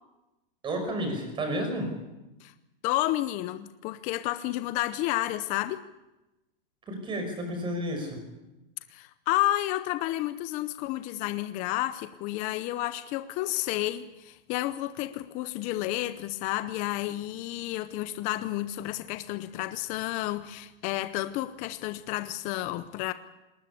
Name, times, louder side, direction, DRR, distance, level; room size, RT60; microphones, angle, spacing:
voice 1, 0.6-1.9 6.9-8.2, equal, 15° right, 5 dB, 5.8 m, -31 dB
voice 2, 2.8-5.8 8.9-23.1, left 15 dB, 25° left, 12 dB, 0.7 m, -31 dB
20.0 x 19.5 x 8.4 m, 0.99 s
hypercardioid pair, 150°, 29 cm